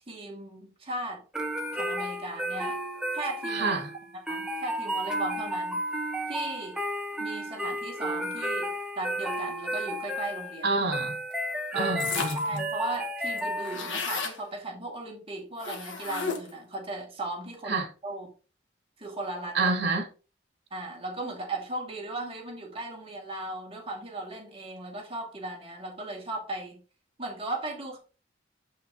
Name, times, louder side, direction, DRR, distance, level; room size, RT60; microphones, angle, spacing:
voice 1, 0.1-1.2 1.7-2.8 3.1-3.7 4.3-5.8 6.3-6.8 7.2-10.7 11.7-11.9 12.4-18.3 19.0-19.6 20.7-26.8 27.2-28.0, right 2 dB, 30° right, 2.3 m, -37 dB
sound 1, 1.3-14.1, equal, 5° right, 1.1 m, -33 dB
voice 2, 3.5-3.9 10.6-11.2 11.8-12.6 17.7-17.9 19.5-20.1, right 3 dB, 60° right, 2.2 m, -28 dB
sound 2, 12.0-12.6 12.9-13.0 13.2-14.4 15.6-16.6, left 5 dB, 80° left, 1.4 m, -33 dB
7.5 x 6.0 x 2.9 m
head